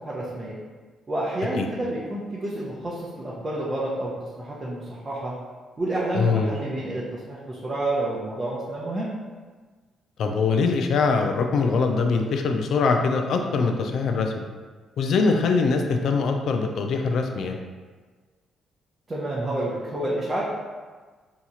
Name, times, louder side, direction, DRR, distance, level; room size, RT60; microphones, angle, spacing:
voice 1, 0.0-0.6 1.1-5.3 5.8-9.1 19.1-20.4, right 1 dB, 30° right, -7 dB, 0.7 m, -29 dB
voice 2, 6.1-6.6 10.2-14.5 15.0-17.6, left 4 dB, 70° left, 4 dB, 0.3 m, -23 dB
2.8 x 2.3 x 4.1 m, 1.4 s
cardioid pair, 90°, 0 cm